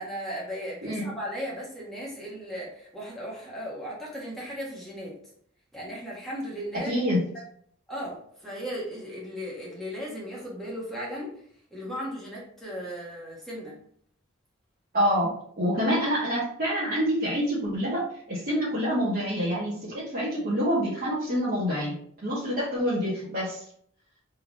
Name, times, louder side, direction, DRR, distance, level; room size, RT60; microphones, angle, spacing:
voice 1, 0.0-5.1 5.7-7.0 7.9-11.3 11.7-13.8, equal, ahead, -6 dB, 1.3 m, -36 dB
voice 2, 0.8-1.1 6.8-7.2 14.9-15.3 15.6-21.9 22.2-23.6, equal, 45° right, -8 dB, 1.1 m, -27 dB
3.5 x 3.4 x 3.0 m, 0.63 s
head